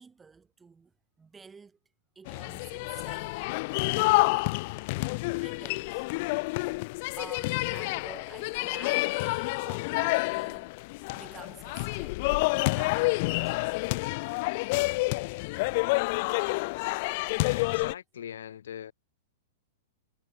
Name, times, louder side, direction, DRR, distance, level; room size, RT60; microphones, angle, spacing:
voice 1, 0.0-1.8 2.2-3.5 3.8-4.9 5.4-6.1 7.2-12.3 12.6-13.8 14.2-14.4 15.6-15.8, right 5 dB, 10° right, 0.7 m, -50 dB
sound 1, 2.3-17.9, left 25 dB, 40° left, 0.3 m, -29 dB
voice 2, 17.5-18.9, left 9 dB, 85° left, 5.6 m, -41 dB
supercardioid pair, 160°, 0 cm